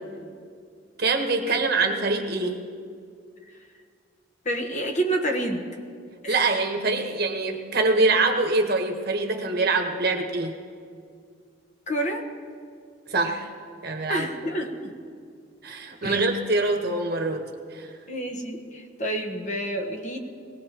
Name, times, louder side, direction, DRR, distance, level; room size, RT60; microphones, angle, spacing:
voice 1, 1.0-2.6 6.3-10.6 13.1-13.5 13.8-14.3 15.6-17.9, right 3 dB, 55° right, 3 dB, 1.3 m, -24 dB
voice 2, 4.4-5.7 6.2-6.5 11.9-12.2 14.1-14.9 16.0-16.3 18.1-20.2, right 1 dB, 40° left, 4 dB, 1.2 m, -29 dB
21.5 x 17.5 x 3.0 m, 2.2 s
head